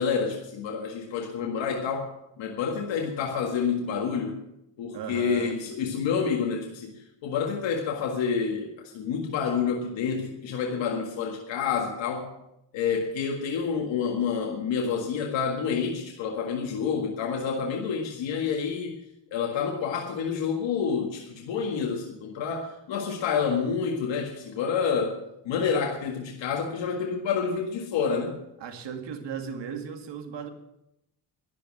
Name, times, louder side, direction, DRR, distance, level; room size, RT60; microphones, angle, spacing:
voice 1, 0.0-2.1 2.4-4.4 4.8-6.9 7.2-12.3 12.7-19.0 19.3-25.2 25.5-28.4, left 6 dB, 85° left, 1 dB, 1.9 m, -28 dB
voice 2, 4.9-5.6 28.6-30.5, right 7 dB, 70° right, 5 dB, 2.2 m, -36 dB
12.0 x 11.0 x 7.4 m, 0.86 s
cardioid pair, 100°, 44 cm